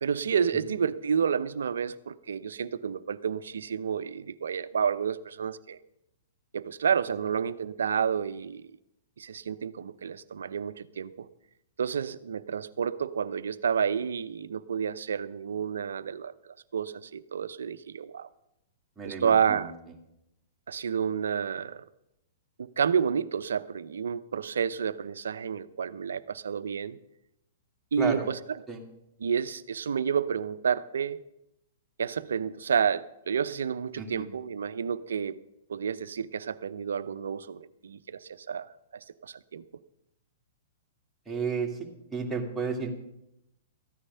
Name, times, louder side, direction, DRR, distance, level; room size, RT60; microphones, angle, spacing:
voice 1, 0.0-5.8 6.5-8.7 9.2-11.3 11.8-18.3 19.0-19.7 20.7-21.9 22.6-27.0 27.9-28.4 29.2-31.2 32.0-35.4 35.7-38.7 39.2-39.6, right 7 dB, 80° right, 15 dB, 0.6 m, -30 dB
voice 2, 19.0-19.7 28.0-28.3 28.7-28.8 34.0-34.3 41.3-42.9, right 5 dB, 10° right, -1 dB, 2.5 m, -32 dB
14.0 x 9.9 x 5.6 m, 0.84 s
hypercardioid pair, 120°, 0 cm